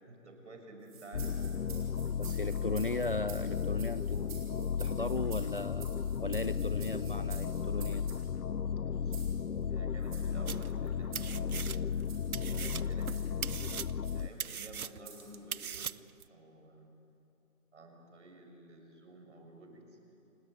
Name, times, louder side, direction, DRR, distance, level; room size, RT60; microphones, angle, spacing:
voice 1, 0.0-1.6 8.8-9.3 9.7-12.1 12.5-13.4 14.1-16.0 16.3-16.9 17.7-20.0, right 1 dB, 55° right, 4 dB, 5.8 m, -52 dB
sound 1, 0.8-8.2 9.1-9.4 10.0-10.3 11.1-11.4 11.9-12.3 13.1-13.4 14.0-14.2 15.0-15.3, right 6 dB, 25° right, 5.0 m, -51 dB
sound 2, 1.1-14.3, left 7 dB, 80° left, 0.8 m, -34 dB
voice 2, 2.2-5.9 6.2-8.0, left 2 dB, 40° left, 14 dB, 0.5 m, -37 dB
sound 3, 10.5-10.9 11.2-12.1 12.3-16.2, right 7 dB, 75° right, 0.7 m, -40 dB
28.5 x 18.0 x 9.5 m, 2.7 s
figure-of-eight pair, 160°, 43 cm